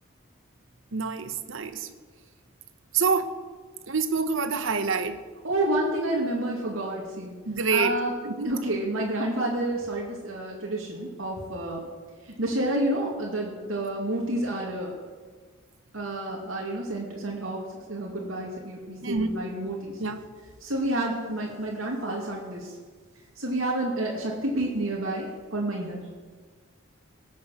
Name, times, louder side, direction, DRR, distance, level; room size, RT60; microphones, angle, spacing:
voice 1, 0.9-1.9 2.9-3.3 3.9-5.2 7.5-8.0 8.2-8.5 19.0-19.4 20.0-20.2, right 4 dB, 70° right, 9 dB, 1.0 m, -26 dB
voice 2, 5.4-7.3 7.7-8.1 8.4-11.8 12.4-14.9 15.9-17.6 17.9-19.9 20.6-22.7 23.4-26.0, right 1 dB, 90° right, -2 dB, 2.4 m, -29 dB
18.0 x 7.3 x 7.7 m, 1.5 s
head